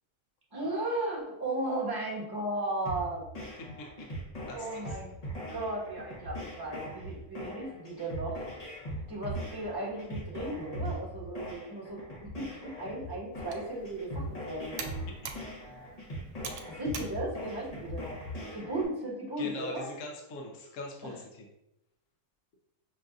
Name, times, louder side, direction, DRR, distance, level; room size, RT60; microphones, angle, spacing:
voice 1, 0.5-3.2 4.5-5.1 5.5-8.4 9.1-14.8 16.7-18.1 18.5-19.9 21.0-21.2, right 1 dB, 15° right, -6 dB, 1.1 m, -35 dB
sound 1, 2.9-18.9, equal, 35° left, 0.7 m, -40 dB
voice 2, 4.5-4.8 15.2-15.3 18.4-18.5 19.4-21.5, left 2 dB, 65° left, 0 dB, 1.0 m, -42 dB
Computer keyboard, 13.3-18.5, right 5 dB, 85° right, 1.1 m, -46 dB
6.1 x 2.5 x 2.3 m, 0.87 s
omnidirectional pair, 1.6 m